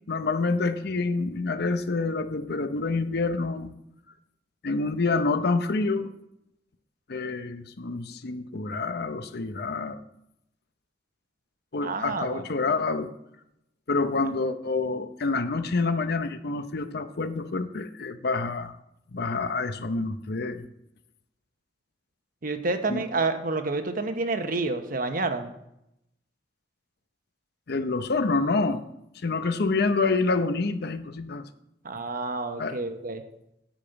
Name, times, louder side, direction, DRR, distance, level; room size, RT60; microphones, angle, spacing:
voice 1, 0.1-3.7 4.6-6.1 7.1-10.0 11.7-13.1 13.9-18.8 19.1-20.6 22.9-23.0 27.7-28.8 29.2-31.4 32.6-32.8, left 3 dB, 60° left, 10 dB, 0.7 m, -27 dB
voice 2, 11.8-12.4 22.4-25.5 31.8-33.2, right 3 dB, 50° right, 8 dB, 1.0 m, -29 dB
10.5 x 5.2 x 7.9 m, 0.82 s
head